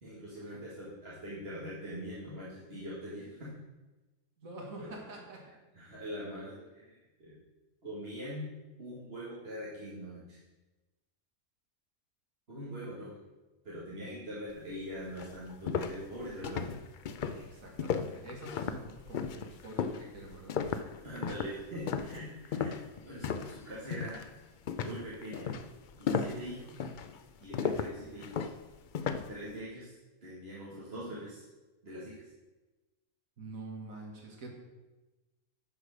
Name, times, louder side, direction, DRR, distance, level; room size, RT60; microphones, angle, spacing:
voice 1, 0.0-3.5 4.7-4.9 5.4-7.3 7.8-8.5 8.8-10.4 12.5-13.2 13.6-16.7 21.0-22.8 23.0-24.3 24.8-25.5 26.0-26.9 27.4-28.5 29.3-30.0 30.2-31.4 31.8-32.3, equal, 45° right, -8 dB, 2.3 m, -43 dB
voice 2, 4.4-5.4 17.3-20.6 33.4-34.5, right 2 dB, 70° right, -1 dB, 2.2 m, -46 dB
sound 1, 14.7-14.8 15.2-23.6 23.9-24.3 24.7-29.4, left 6 dB, 85° left, 0.4 m, -35 dB
10.5 x 4.9 x 6.4 m, 1.1 s
omnidirectional pair, 1.5 m